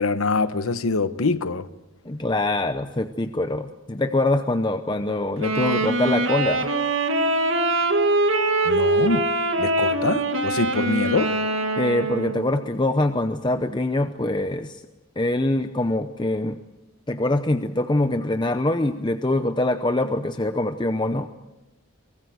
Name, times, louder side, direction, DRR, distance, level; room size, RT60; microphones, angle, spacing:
voice 1, 0.0-1.7 8.6-9.2 9.6-11.3, left 3 dB, 90° left, 1.0 m, -24 dB
voice 2, 2.0-6.7 11.8-14.8 15.2-16.6 17.1-21.3, left 2 dB, 20° left, 0.7 m, -24 dB
Wind instrument woodwind instrument, 5.4-12.6, right 2 dB, 70° right, 2.1 m, -23 dB
23.5 x 19.0 x 7.9 m
head